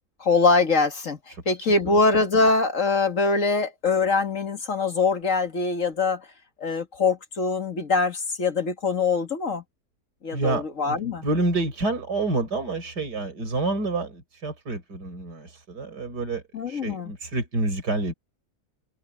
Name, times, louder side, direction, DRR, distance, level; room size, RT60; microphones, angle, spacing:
voice 1, 0.2-6.3 6.6-9.6 10.2-11.2 16.5-17.1, left 3 dB, 50° left, 2.0 m, -23 dB
voice 2, 10.3-18.1, right 2 dB, 75° right, 5.3 m, -28 dB
omnidirectional pair, 1.8 m